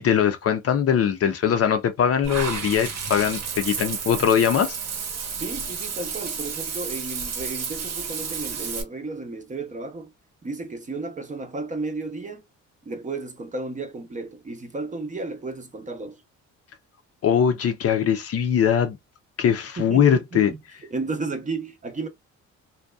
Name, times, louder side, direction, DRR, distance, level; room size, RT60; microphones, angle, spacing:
voice 1, 0.0-4.7 17.2-19.0 19.4-20.5, left 8 dB, 50° left, 0.5 m, -21 dB
Water / Bathtub (filling or washing), 2.2-8.8, right 6 dB, 60° right, 0.8 m, -31 dB
voice 2, 5.4-10.1 10.4-12.4 12.8-16.2 19.8-20.6 20.9-22.1, right 3 dB, 25° right, 0.6 m, -33 dB
2.6 x 2.2 x 2.3 m
cardioid pair, 90°, 30 cm